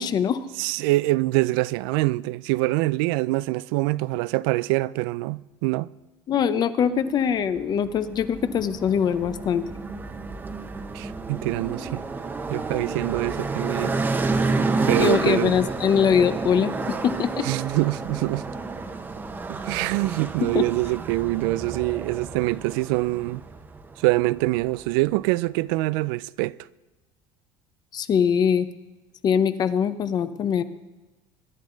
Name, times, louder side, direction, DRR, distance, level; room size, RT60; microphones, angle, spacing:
voice 1, 0.0-0.4 6.3-9.6 15.0-17.5 20.5-20.6 27.9-28.7 29.2-30.6, left 7 dB, 35° left, 0.8 m, -22 dB
voice 2, 0.6-5.9 10.9-12.0 12.5-14.1 14.9-15.5 17.4-18.4 19.5-23.4 24.0-26.6, right 20 dB, 90° right, 0.4 m, -24 dB
sound 1, 7.5-25.0, right 3 dB, 15° right, 1.0 m, -30 dB
21.0 x 11.0 x 3.9 m
cardioid pair, 140°, 12 cm